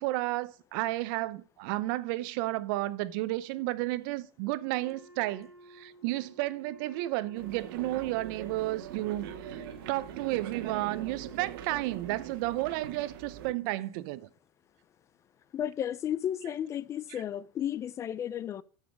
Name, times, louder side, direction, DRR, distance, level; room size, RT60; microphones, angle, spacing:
voice 1, 0.0-14.3, right 17 dB, 65° right, 0.7 m, -32 dB
Wind instrument woodwind instrument, 4.7-12.7, right 2 dB, 25° right, 4.5 m, -55 dB
sound 1, 7.3-13.5, right 10 dB, 80° right, 1.6 m, -42 dB
voice 2, 15.5-18.6, left 10 dB, 25° left, 0.4 m, -33 dB
8.3 x 7.3 x 6.2 m
supercardioid pair, 155°, 12 cm